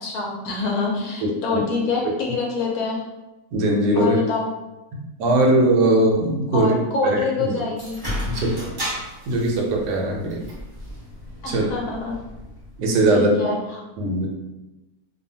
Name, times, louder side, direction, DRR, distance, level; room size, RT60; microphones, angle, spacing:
voice 1, 0.0-3.0 4.0-4.5 6.5-8.0 11.4-12.1 13.1-13.8, left 4 dB, 65° left, -2 dB, 1.0 m, -26 dB
voice 2, 1.2-1.6 3.5-4.2 4.9-6.8 7.0-7.5 8.3-8.6 9.3-10.4 11.5-11.7 12.8-13.4 14.0-14.3, right 1 dB, 75° right, -1 dB, 1.1 m, -20 dB
sound 1, 7.8-13.1, left 1 dB, 30° right, 0.4 m, -34 dB
2.7 x 2.3 x 2.6 m, 1.0 s
omnidirectional pair, 1.8 m